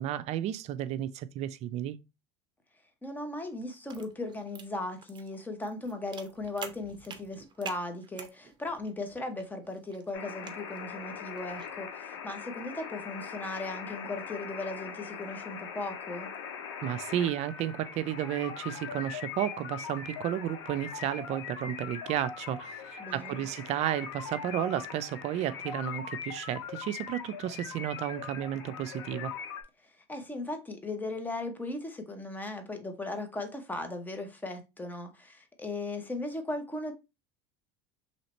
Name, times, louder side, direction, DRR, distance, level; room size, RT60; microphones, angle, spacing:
voice 1, 0.0-2.0 16.8-29.3, right 12 dB, 50° right, 0.4 m, -33 dB
voice 2, 3.0-16.3 23.0-23.4 29.8-36.9, left 2 dB, 10° left, 0.9 m, -37 dB
sound 1, 3.4-11.8, right 6 dB, 35° right, 0.8 m, -49 dB
sound 2, 10.1-29.6, left 7 dB, 90° left, 0.7 m, -41 dB
3.2 x 2.8 x 4.1 m
supercardioid pair, 100°, 14 cm